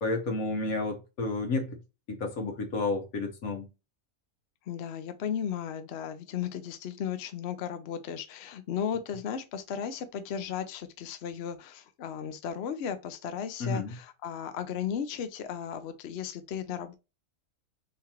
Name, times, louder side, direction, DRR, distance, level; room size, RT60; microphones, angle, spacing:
voice 1, 0.0-1.8 2.1-3.7 13.6-13.9, left 3 dB, 85° left, 1.7 m, -31 dB
voice 2, 4.7-16.9, left 8 dB, 60° left, 0.8 m, -35 dB
4.3 x 3.9 x 2.9 m
omnidirectional pair, 1.4 m